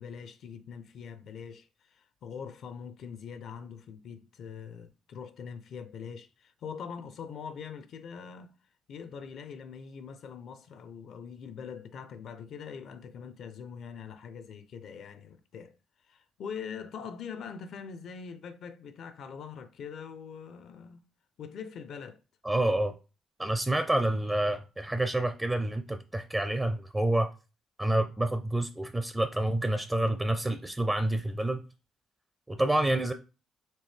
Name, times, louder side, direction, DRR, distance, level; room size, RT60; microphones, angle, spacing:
voice 1, 0.0-8.5 8.9-15.7 16.0-21.0 21.4-22.2, left 6 dB, 70° left, 0.5 m, -43 dB
voice 2, 22.4-22.9 23.4-27.3 27.8-31.6 32.5-33.1, right 1 dB, 15° right, 0.4 m, -28 dB
4.5 x 2.8 x 3.2 m
cardioid pair, 90°, 0 cm